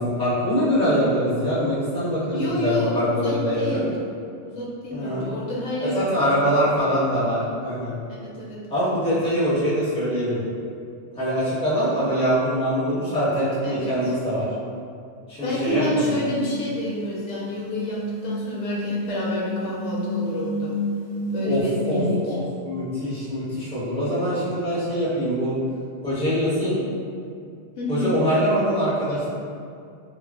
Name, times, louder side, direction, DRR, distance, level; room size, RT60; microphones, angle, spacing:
voice 1, 0.0-3.8 4.9-5.3 5.8-8.0 8.7-10.4 11.2-14.4 15.3-16.0 21.4-25.6 26.0-26.8 27.9-29.3, equal, 5° left, -11 dB, 0.6 m, -23 dB
voice 2, 2.3-3.9 4.4-6.3 8.1-8.6 13.6-14.1 15.4-20.8 21.3-22.4 27.8-28.1, left 1 dB, 80° left, -5 dB, 1.0 m, -28 dB
sound 1, 15.7-21.6, left 1 dB, 55° right, 0.5 m, -30 dB
2.3 x 2.1 x 3.4 m, 2.3 s
omnidirectional pair, 1.3 m